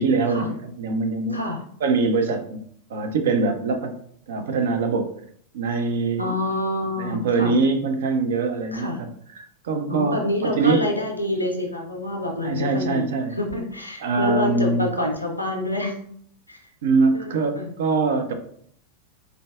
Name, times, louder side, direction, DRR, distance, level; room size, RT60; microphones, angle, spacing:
voice 1, 0.0-1.4 1.8-2.6 2.9-3.9 4.3-5.1 5.5-6.3 7.0-10.2 10.4-10.8 12.4-13.4 14.0-14.9 16.8-18.3, right 4 dB, 60° right, 6 dB, 0.5 m, -23 dB
voice 2, 6.2-7.6 8.7-9.0 9.9-16.0 16.5-16.6 17.1-17.7, left 1 dB, 90° left, 2 dB, 0.5 m, -27 dB
3.8 x 2.2 x 2.3 m, 0.62 s
figure-of-eight pair, 90°, 0 cm